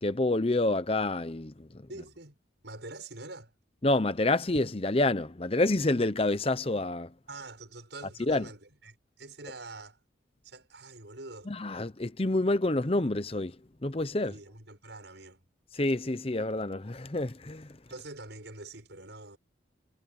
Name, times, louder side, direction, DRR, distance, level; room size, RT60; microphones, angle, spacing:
voice 1, 0.0-1.7 3.8-7.1 8.3-8.4 11.5-13.5 13.8-14.3 15.7-17.7, left 2 dB, 30° left, 0.8 m, -28 dB
voice 2, 1.9-2.4 2.6-3.5 7.3-10.0 10.4-11.5 14.2-15.4 17.9-19.4, right 2 dB, 65° right, 7.0 m, -45 dB
head